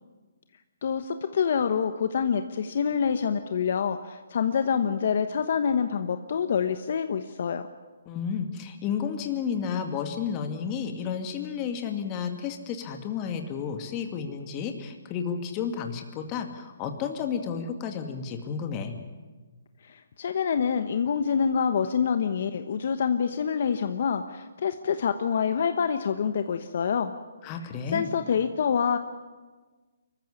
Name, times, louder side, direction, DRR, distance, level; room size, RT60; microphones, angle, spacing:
voice 1, 0.8-7.6 19.9-27.1 27.9-29.0, left 7 dB, 55° left, 9 dB, 1.1 m, -26 dB
voice 2, 8.1-19.0 27.4-28.1, left 7 dB, 25° left, 5 dB, 2.2 m, -32 dB
24.5 x 14.5 x 9.8 m, 1.3 s
hypercardioid pair, 150°, 0 cm